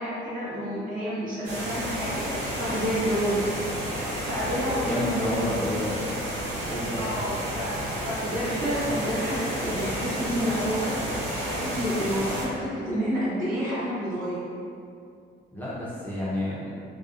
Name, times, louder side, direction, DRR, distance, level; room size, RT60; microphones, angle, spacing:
voice 1, 0.0-3.4 4.0-5.6 7.0-14.4, equal, 45° right, -9 dB, 1.0 m, -29 dB
sound 1, 1.4-12.4, equal, 85° right, 0.9 m, -31 dB
voice 2, 4.8-6.0 6.7-7.1 15.5-16.7, left 1 dB, 10° left, -10 dB, 0.5 m, -31 dB
2.6 x 2.1 x 2.4 m, 2.4 s
cardioid pair, 90°, 20 cm